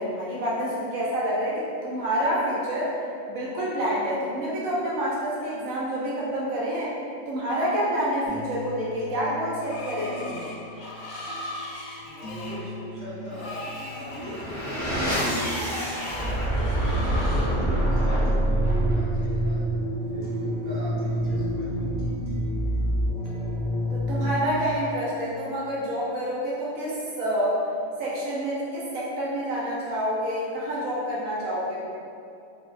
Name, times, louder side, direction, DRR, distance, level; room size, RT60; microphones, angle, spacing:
voice 1, 0.0-3.0 3.3-6.9 7.3-10.6 23.9-27.6 28.0-31.8, equal, 80° right, -6 dB, 1.0 m, -28 dB
sound 1, 8.3-24.3, left 2 dB, 40° left, 0.6 m, -42 dB
Screech, 9.6-17.6, left 1 dB, 80° left, 1.0 m, -39 dB
voice 2, 12.0-15.7 16.1-19.7 20.1-21.9, right 1 dB, 40° right, -10 dB, 0.8 m, -40 dB
sound 2, 13.9-24.6, right 1 dB, 15° right, 0.5 m, -26 dB
3.3 x 2.1 x 2.3 m, 2.5 s
omnidirectional pair, 1.4 m